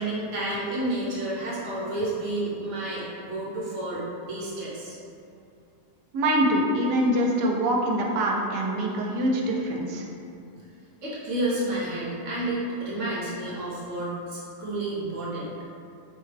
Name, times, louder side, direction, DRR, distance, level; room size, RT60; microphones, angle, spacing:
voice 1, 0.0-5.0 11.0-15.6, right 1 dB, 55° right, -7 dB, 1.1 m, -30 dB
voice 2, 6.1-10.0, right 1 dB, 80° right, -1 dB, 1.2 m, -24 dB
4.6 x 2.2 x 3.2 m, 2.6 s
omnidirectional pair, 1.8 m